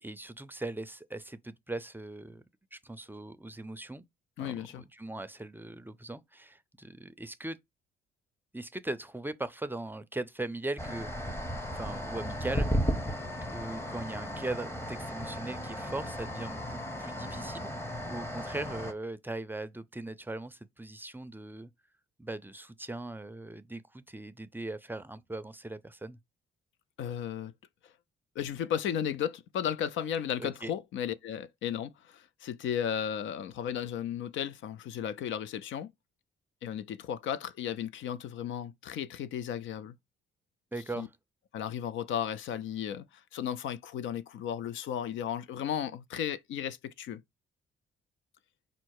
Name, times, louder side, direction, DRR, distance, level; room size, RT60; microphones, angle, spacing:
voice 1, 0.0-2.4 2.7-4.1 4.4-7.6 8.5-11.1 11.7-12.7 13.4-17.7 18.1-21.7 22.2-26.2 30.4-30.7 40.7-41.1, right 2 dB, 10° right, 0.4 m, -39 dB
voice 2, 4.4-4.8 27.0-27.5 28.4-35.9 36.6-40.0 41.0-41.1 41.5-43.0 43.3-47.2, left 9 dB, 75° left, 0.5 m, -34 dB
sound 1, 10.8-18.9, equal, 10° left, 0.8 m, -35 dB
5.2 x 2.1 x 4.6 m
cardioid pair, 90°, 20 cm